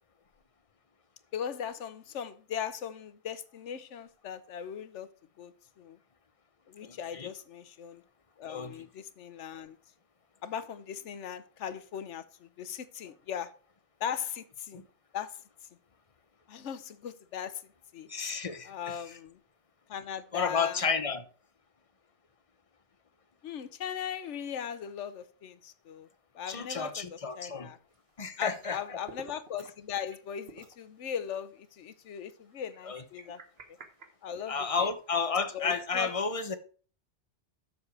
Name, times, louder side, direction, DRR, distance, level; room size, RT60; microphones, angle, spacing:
voice 1, 1.3-5.1 5.4-6.0 6.7-8.0 8.4-9.8 10.4-13.5 14.0-14.8 15.1-15.4 16.5-18.1 18.7-19.4 19.9-20.8 23.4-26.1 26.3-27.8 28.4-33.4 34.2-34.9 35.5-36.1, left 8 dB, 90° left, 1.1 m, -39 dB
voice 2, 6.8-7.3 8.5-8.8 14.7-14.9 18.1-19.2 20.3-21.2 26.5-27.7 28.2-29.0 32.8-33.0 34.5-36.5, left 5 dB, 35° left, 0.9 m, -32 dB
sound 1, 27.9-28.8 29.0-29.8 30.1-30.2 30.5-30.8 31.3-31.4 32.7-34.8, right 4 dB, 60° right, 1.4 m, -51 dB
7.4 x 6.9 x 4.7 m
omnidirectional pair, 1.2 m